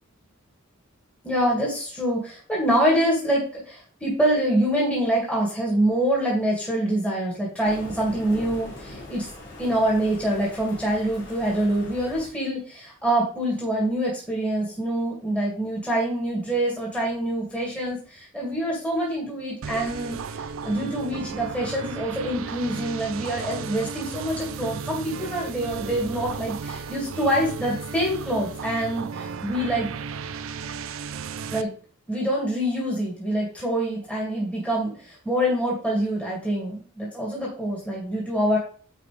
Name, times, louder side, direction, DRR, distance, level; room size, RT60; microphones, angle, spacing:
voice 1, 1.2-9.3 9.6-29.9 31.5-31.7 32.1-38.6, right 1 dB, 5° left, -4 dB, 2.2 m, -25 dB
Thunder, 7.6-12.3, left 1 dB, 60° left, 3.3 m, -41 dB
sound 1, 19.6-31.6, right 5 dB, 65° right, 0.4 m, -35 dB
9.7 x 4.3 x 3.4 m, 0.42 s
head